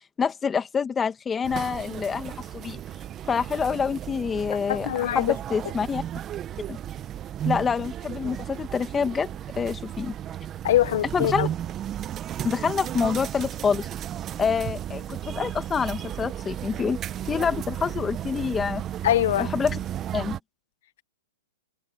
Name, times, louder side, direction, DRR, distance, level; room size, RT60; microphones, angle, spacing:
voice 1, 0.2-2.8 3.3-6.0 6.7-6.8 7.4-9.3 9.6-10.2 11.1-11.5 12.4-13.9 14.4-17.0 17.2-18.8 19.4-19.8 20.1-20.4, left 6 dB, 15° left, 1.9 m, -27 dB
sound 1, 1.4-20.4, right 11 dB, 25° right, 1.0 m, -34 dB
voice 2, 4.7-5.3 10.6-11.5 19.0-19.5, left 13 dB, 60° left, 1.0 m, -23 dB
hypercardioid pair, 140°, 0 cm